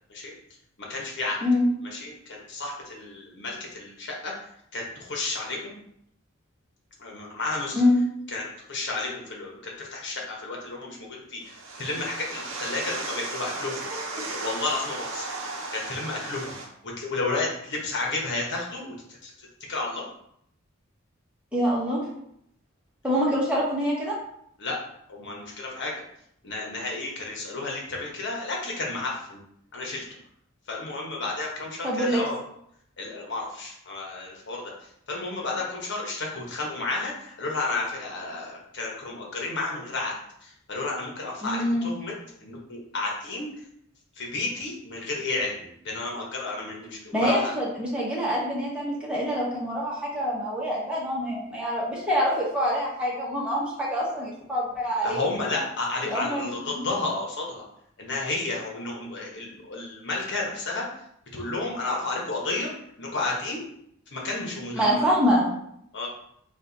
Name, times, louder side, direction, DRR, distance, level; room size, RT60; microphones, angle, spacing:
voice 1, 0.8-1.4 1.8-4.3 4.7-5.8 7.0-7.8 8.3-13.8 14.1-15.3 15.7-16.5 16.8-20.0 24.6-24.8 25.1-25.9 26.4-29.4 29.7-30.0 30.7-32.4 33.0-40.1 40.4-42.1 42.4-43.5 44.2-47.5 55.0-57.6 58.0-60.8 61.3-63.6 64.1-65.2 65.9-66.1, left 3 dB, 60° left, -1 dB, 1.2 m, -32 dB
sound 1, 11.4-16.7, right 3 dB, 70° right, 0.9 m, -35 dB
voice 2, 21.5-22.0 23.0-24.1 31.8-32.2 41.4-41.9 47.1-55.2 56.1-56.9 64.8-65.4, equal, 5° right, -6 dB, 1.3 m, -25 dB
4.3 x 2.6 x 4.0 m, 0.72 s
head